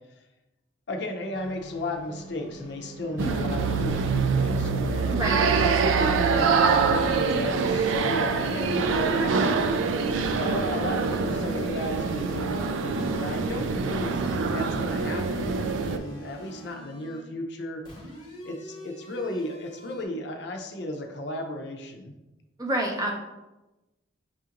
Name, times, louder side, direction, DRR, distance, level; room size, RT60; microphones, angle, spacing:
voice 1, 0.9-5.1 6.0-9.5 10.3-17.8 18.4-22.1, left 1 dB, 60° left, 4 dB, 0.5 m, -34 dB
sound 1, 1.3-7.0 7.9-9.6 10.2-17.3 17.8-20.0, equal, 25° left, 0.8 m, -44 dB
sound 2, 3.2-16.0, right 5 dB, 80° right, 0.3 m, -25 dB
voice 2, 5.1-5.8 22.6-23.1, right 1 dB, 20° right, 0 dB, 0.5 m, -29 dB
6.0 x 2.5 x 2.8 m, 1.0 s
head